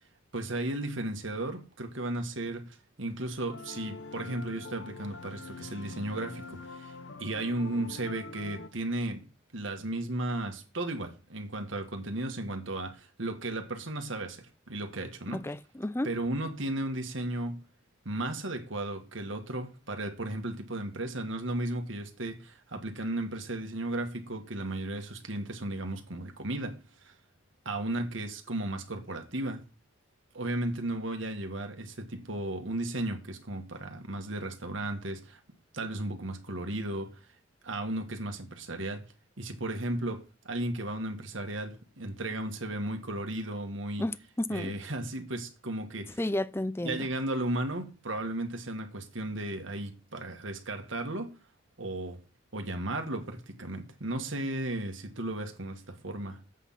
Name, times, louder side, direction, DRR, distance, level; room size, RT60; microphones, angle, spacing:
voice 1, 0.3-9.3 9.5-15.4 16.0-17.6 18.1-27.1 27.7-29.6 30.3-35.4 35.7-37.2 37.6-39.1 39.4-44.0 44.5-46.2 46.8-51.3 51.8-52.2 52.5-56.4, right 1 dB, 75° right, 1.8 m, -35 dB
sound 1, 3.5-8.7, left 3 dB, 65° left, 0.9 m, -44 dB
voice 2, 15.3-16.1 44.0-44.7 46.2-47.1, left 1 dB, 10° left, 0.5 m, -32 dB
8.3 x 8.1 x 5.8 m
head